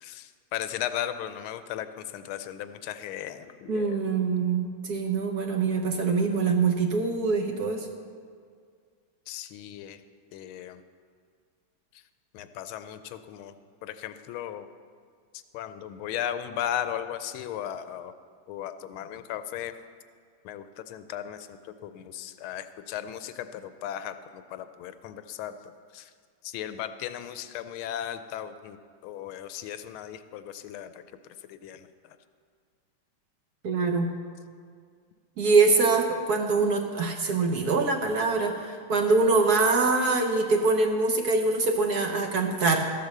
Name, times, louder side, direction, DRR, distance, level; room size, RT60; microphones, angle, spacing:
voice 1, 0.0-4.0 9.3-10.0 10.3-10.8 12.3-13.5 13.8-14.7 15.3-18.1 18.5-19.8 20.4-26.1 26.4-28.8 29.0-31.0 31.5-32.2, left 10 dB, 90° left, 11 dB, 1.5 m, -36 dB
voice 2, 3.7-7.9 33.6-34.1 35.4-42.9, right 3 dB, 55° right, 3 dB, 1.2 m, -24 dB
13.5 x 8.2 x 6.6 m, 2.1 s
omnidirectional pair, 2.3 m